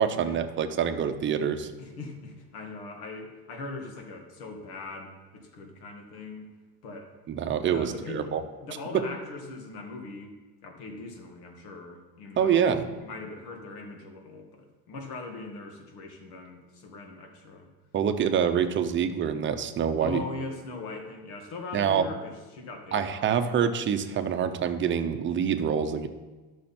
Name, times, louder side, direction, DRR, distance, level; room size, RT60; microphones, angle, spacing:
voice 1, 0.0-1.7 7.3-8.4 8.9-9.1 12.4-12.8 17.9-20.2 21.7-22.1 22.9-26.1, right 8 dB, 25° right, 7 dB, 0.7 m, -26 dB
voice 2, 1.8-6.5 6.8-7.1 7.7-8.2 8.6-10.3 10.6-12.7 13.0-17.7 20.0-23.6, left 3 dB, 90° left, 3 dB, 2.0 m, -40 dB
12.5 x 6.4 x 4.3 m, 1.3 s
cardioid pair, 145°, 44 cm